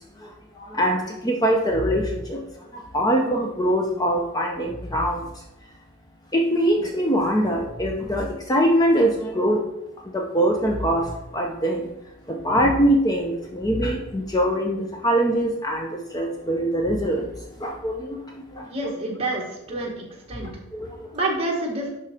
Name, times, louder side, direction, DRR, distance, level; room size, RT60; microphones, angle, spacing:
voice 1, 0.2-2.4 2.7-5.4 6.3-9.7 10.1-11.9 12.3-17.3 17.6-18.7 20.4-21.1, equal, 15° left, 1 dB, 0.6 m, -23 dB
voice 2, 18.7-20.5 21.1-21.9, right 2 dB, 25° right, -1 dB, 1.6 m, -28 dB
11.0 x 3.7 x 4.4 m, 0.92 s
head